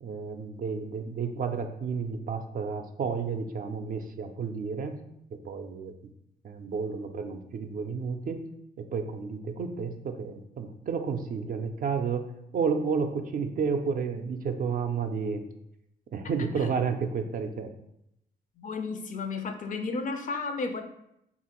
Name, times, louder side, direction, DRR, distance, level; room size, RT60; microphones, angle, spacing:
voice 1, 0.0-5.0 5.3-6.1 6.4-8.5 8.8-15.4 16.1-17.7, right 5 dB, 50° right, 6 dB, 0.4 m, -31 dB
voice 2, 18.6-20.8, left 4 dB, 45° left, 7 dB, 0.4 m, -33 dB
3.1 x 2.4 x 2.9 m, 0.79 s
cardioid pair, 75°, 18 cm